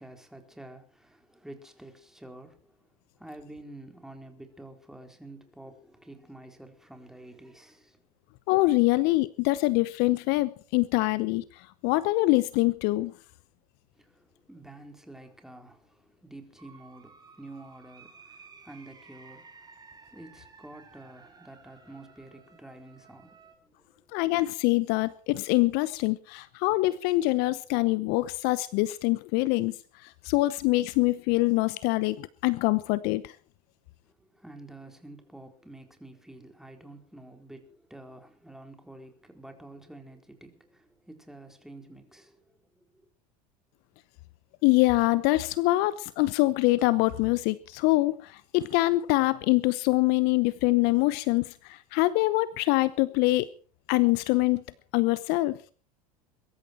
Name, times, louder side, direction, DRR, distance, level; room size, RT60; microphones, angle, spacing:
voice 1, 0.0-2.9 3.2-8.1 14.0-19.7 20.0-24.1 34.2-43.1, right 2 dB, ahead, 4.2 m, -49 dB
voice 2, 8.5-13.1 24.1-29.8 30.0-33.3 44.6-53.5 53.9-54.6 54.9-55.6, left 20 dB, 55° left, 0.9 m, -24 dB
sound 1, 16.6-23.6, right 5 dB, 20° right, 4.3 m, -54 dB
23.0 x 13.0 x 4.6 m
hypercardioid pair, 80°, 20 cm